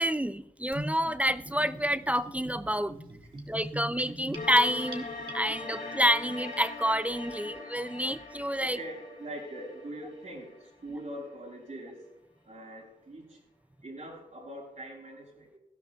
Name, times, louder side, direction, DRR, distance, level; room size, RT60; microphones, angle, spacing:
voice 1, 0.0-3.0 3.5-5.1 5.3-8.8, equal, 10° right, 13 dB, 0.4 m, -28 dB
Gurgling / Bathtub (filling or washing), 0.7-5.8, right 1 dB, 35° right, 2.1 m, -41 dB
sound 1, 4.3-11.3, left 3 dB, 80° left, 4.5 m, -42 dB
voice 2, 8.6-12.0 12.4-13.4 13.8-15.6, right 1 dB, 60° right, -3 dB, 5.8 m, -42 dB
19.0 x 14.5 x 2.3 m, 0.81 s
wide cardioid pair, 90°, 14 cm